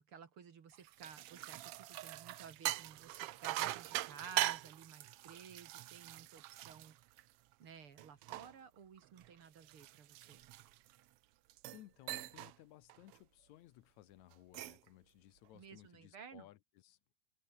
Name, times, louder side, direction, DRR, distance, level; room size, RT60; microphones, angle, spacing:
voice 1, 0.0-7.0 7.6-10.4 15.5-16.5, right 6 dB, 50° right, 2.5 m, -55 dB
sound 1, 0.7-7.5 8.0-11.0 11.5-11.8 12.1-12.5 12.9-13.2 14.3-14.9, right 15 dB, 75° right, 1.4 m, -42 dB
voice 2, 11.7-17.0, left 15 dB, 80° left, 2.1 m, -60 dB
open air
omnidirectional pair, 3.4 m